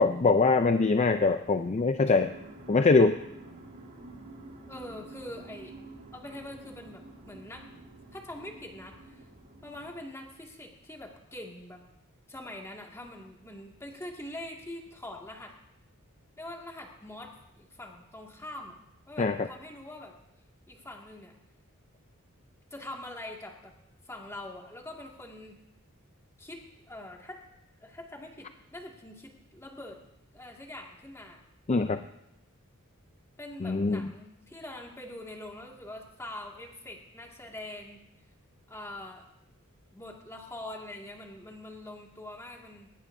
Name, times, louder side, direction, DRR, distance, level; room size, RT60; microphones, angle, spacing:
voice 1, 0.0-2.3 2.7-3.2 19.2-19.5 31.7-32.0 33.6-34.1, left 3 dB, 30° left, 8 dB, 0.5 m, -23 dB
sound 1, 2.2-10.0, right 2 dB, 45° right, 2.6 m, -49 dB
voice 2, 4.7-5.7 6.1-7.6 8.1-9.2 9.6-11.8 12.3-15.5 16.4-18.8 19.1-20.1 20.7-21.3 22.7-23.7 24.1-25.6 26.4-27.4 27.8-30.0 30.3-31.4 33.4-38.0 38.7-39.2 39.9-42.9, left 1 dB, 15° left, 0 dB, 2.0 m, -44 dB
21.0 x 18.5 x 2.7 m, 0.84 s
head